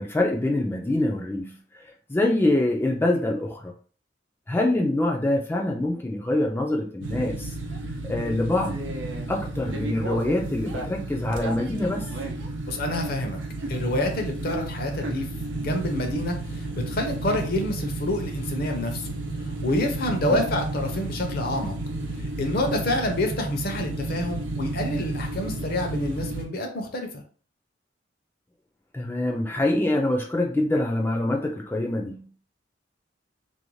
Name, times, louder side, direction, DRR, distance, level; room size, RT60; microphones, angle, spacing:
voice 1, 0.0-1.8 2.1-3.7 4.5-7.5 8.0-8.9 9.3-12.1 20.3-20.4 28.9-32.3, left 1 dB, 10° left, 0.3 m, -25 dB
sound 1, 7.0-26.4, right 2 dB, 80° right, 0.5 m, -32 dB
voice 2, 12.7-13.4 13.7-15.3 15.6-19.1 19.5-21.7 22.2-27.2, left 1 dB, 55° left, 0.6 m, -28 dB
2.6 x 2.0 x 3.0 m
head